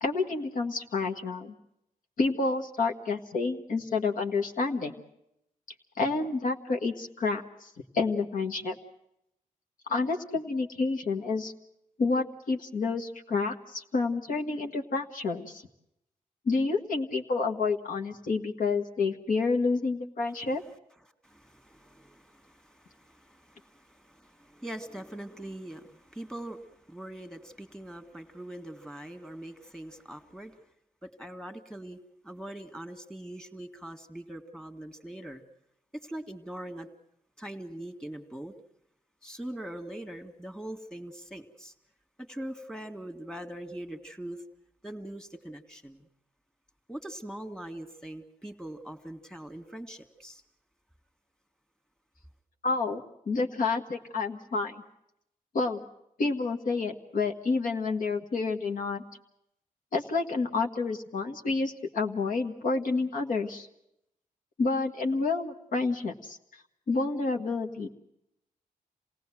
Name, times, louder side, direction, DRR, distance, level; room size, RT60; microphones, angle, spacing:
voice 1, 0.0-1.5 2.2-4.9 6.0-7.7 7.9-8.7 9.9-11.5 12.0-15.6 16.5-20.6 52.6-54.8 55.5-55.8 56.2-59.0 59.9-63.7 64.6-66.4 66.9-67.9, left 3 dB, 75° left, 4 dB, 1.7 m, -29 dB
voice 2, 21.2-30.6 31.0-32.0 32.2-35.4 35.9-36.9 37.4-38.5 39.2-41.7 42.2-44.4 44.8-46.1 46.9-50.4, right 1 dB, 5° left, 7 dB, 2.0 m, -42 dB
27.5 x 18.0 x 7.7 m, 0.80 s
cardioid pair, 100°, 14 cm